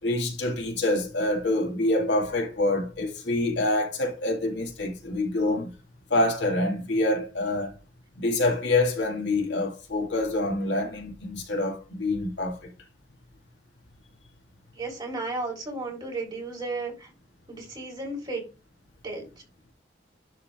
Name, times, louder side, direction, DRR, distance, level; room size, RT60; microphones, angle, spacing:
voice 1, 0.0-5.7 6.1-7.7 8.2-12.7, left 2 dB, 70° left, 2.1 m, -26 dB
voice 2, 14.7-17.1 17.5-18.4 19.0-19.3, right 2 dB, 25° right, 3.9 m, -34 dB
11.0 x 3.9 x 3.5 m
head